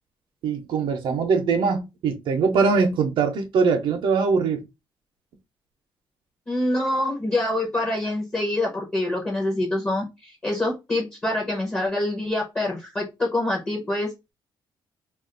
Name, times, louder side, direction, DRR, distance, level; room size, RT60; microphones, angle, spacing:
voice 1, 0.4-4.6, right 5 dB, 70° right, 0.6 m, -22 dB
voice 2, 6.5-14.1, left 1 dB, 15° left, 0.7 m, -25 dB
2.4 x 2.3 x 3.6 m
cardioid pair, 170°, 9 cm